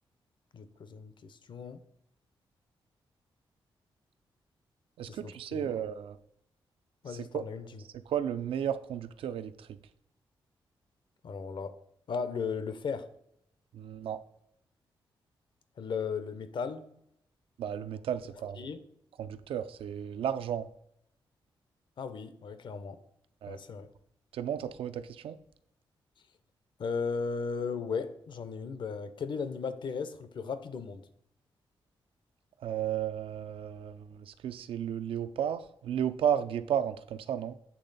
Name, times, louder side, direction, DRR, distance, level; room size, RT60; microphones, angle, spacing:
voice 1, 0.5-1.8 5.1-5.7 7.0-7.8 11.2-11.8 12.1-13.1 15.8-16.8 18.6-18.8 22.0-23.0 23.5-23.9 26.8-31.1, left 5 dB, 60° left, 11 dB, 0.6 m, -36 dB
voice 2, 5.0-6.2 7.1-7.4 8.1-9.7 13.7-14.2 17.6-18.6 19.2-20.7 23.4-23.6 24.3-25.4 32.6-37.6, right 9 dB, 80° right, 12 dB, 0.4 m, -33 dB
8.4 x 3.3 x 4.0 m, 0.74 s
cardioid pair, 85°, 9 cm